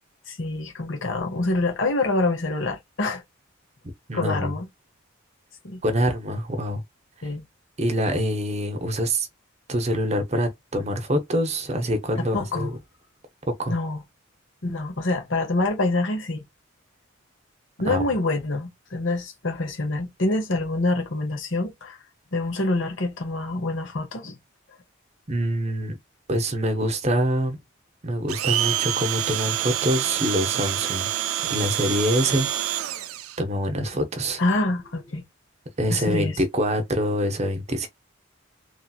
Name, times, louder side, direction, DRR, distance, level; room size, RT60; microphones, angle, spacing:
voice 1, 0.3-3.2 4.1-4.7 5.6-5.8 7.2-7.4 12.2-12.7 13.7-14.0 14.6-16.4 17.8-22.0 22.3-24.4 34.4-35.2 35.9-36.4, left 2 dB, 65° left, 1.0 m, -26 dB
voice 2, 4.1-4.6 5.8-6.8 7.8-9.3 9.7-12.7 13.6-13.7 17.9-18.0 25.3-26.0 26.3-27.6 28.0-31.1 31.5-32.5 33.4-34.4 35.8-37.9, equal, 30° right, 0.7 m, -25 dB
Domestic sounds home sounds, 28.3-33.4, right 12 dB, 90° right, 0.4 m, -27 dB
3.1 x 2.8 x 2.3 m
head